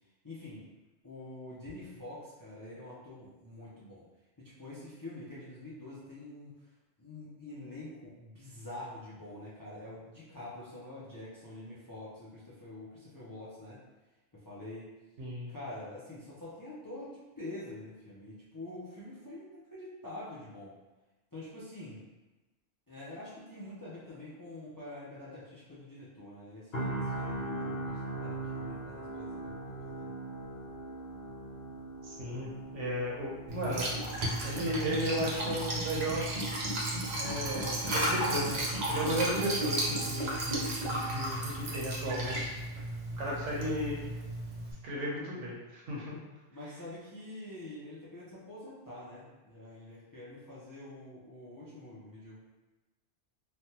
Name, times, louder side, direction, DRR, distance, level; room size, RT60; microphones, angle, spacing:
voice 1, 0.2-0.7 1.0-4.0 4.4-6.7 7.0-13.8 14.3-14.9 15.5-20.7 21.3-22.0 22.9-30.1 46.5-52.4, left 1 dB, 25° left, -9 dB, 0.4 m, -46 dB
voice 2, 15.2-15.5 32.0-33.9 34.4-36.3 37.1-42.5 43.2-44.0 44.8-46.2, equal, 80° right, -4 dB, 1.1 m, -35 dB
sound 1, 26.7-40.7 41.1-41.3, right 2 dB, 60° left, 0.9 m, -42 dB
Liquid, 33.5-44.7, right 1 dB, 45° right, 0.6 m, -34 dB
3.3 x 2.3 x 2.8 m, 1.1 s
omnidirectional pair, 1.2 m